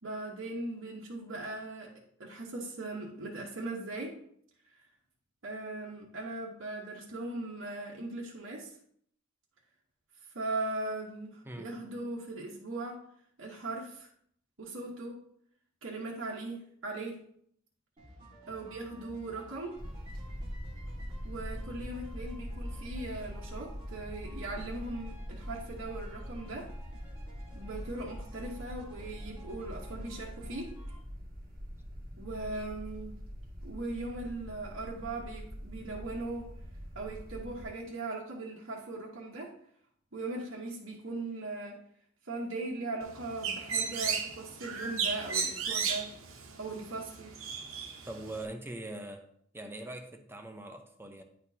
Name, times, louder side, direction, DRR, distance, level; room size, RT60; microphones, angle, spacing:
voice 1, 0.0-1.9 2.2-4.1 5.4-8.7 10.3-13.0 13.4-14.1 14.6-15.2 15.8-17.2 18.5-19.7 21.2-26.7 27.5-30.7 32.2-33.1 33.6-36.5 36.9-39.5 40.1-41.8 42.2-46.1 46.6-47.3, right 2 dB, 70° right, -4 dB, 1.1 m, -39 dB
sound 1, 18.0-31.0, equal, 25° right, 1.9 m, -53 dB
sound 2, 19.8-37.7, equal, 45° right, 1.7 m, -43 dB
Bird, 43.0-48.4, right 6 dB, 90° right, 0.9 m, -35 dB
voice 2, 48.1-49.3 49.5-51.2, right 1 dB, 10° right, 5 dB, 0.6 m, -42 dB
9.7 x 4.4 x 2.7 m, 0.65 s
head